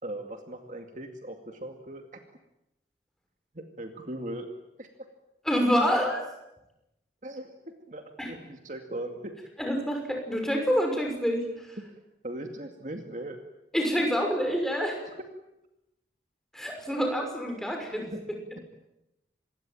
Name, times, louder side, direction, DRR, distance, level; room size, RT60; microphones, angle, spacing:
voice 1, 0.0-2.2 3.5-4.5 4.8-4.9 7.2-7.5 7.9-9.3 11.9-12.0 12.2-13.4 18.1-18.2, right 1 dB, 45° right, 4 dB, 2.3 m, -39 dB
voice 2, 5.4-6.3 8.2-8.3 9.6-11.8 13.7-15.0 16.5-18.1, equal, ahead, 2 dB, 6.1 m, -27 dB
27.0 x 21.5 x 9.1 m, 0.91 s
head